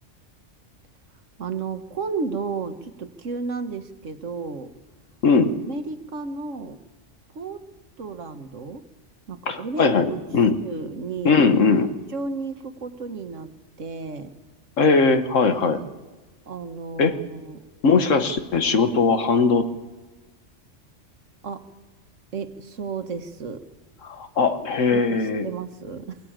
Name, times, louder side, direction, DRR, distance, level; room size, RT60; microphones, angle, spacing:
voice 1, 1.4-4.7 5.6-6.8 7.3-7.6 8.0-8.8 9.3-10.2 10.6-11.4 12.1-13.5 13.8-14.3 16.5-17.6 21.4-21.6 22.3-23.6 24.9-26.2, right 4 dB, 80° right, 8 dB, 1.6 m, -32 dB
voice 2, 9.5-10.6 11.3-11.9 14.8-15.8 17.0-17.1 17.8-19.6 24.0-25.5, left 4 dB, 85° left, 8 dB, 1.7 m, -19 dB
23.0 x 17.0 x 8.9 m, 1.2 s
omnidirectional pair, 1.3 m